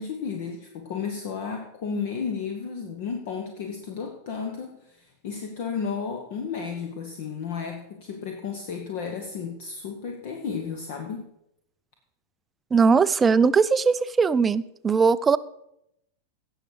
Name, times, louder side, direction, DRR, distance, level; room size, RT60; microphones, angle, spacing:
voice 1, 0.0-11.3, left 6 dB, 50° left, 4 dB, 1.2 m, -33 dB
voice 2, 12.7-15.4, right 5 dB, 15° right, 16 dB, 0.4 m, -20 dB
16.5 x 6.5 x 4.9 m, 0.80 s
figure-of-eight pair, 90°, 0 cm